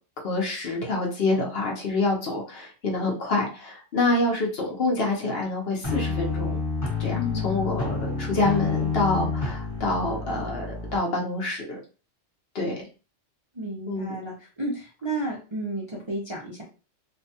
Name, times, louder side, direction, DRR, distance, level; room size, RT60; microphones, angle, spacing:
voice 1, 0.2-6.6 7.0-7.2 7.4-11.8 12.5-12.7 13.9-14.2, left 2 dB, 55° left, -1 dB, 0.9 m, -26 dB
sound 1, 5.8-11.0, left 4 dB, 15° left, 0.8 m, -29 dB
voice 2, 7.1-7.6 13.5-16.6, right 1 dB, 35° right, -5 dB, 0.4 m, -32 dB
2.6 x 2.2 x 2.7 m, 0.35 s
omnidirectional pair, 1.3 m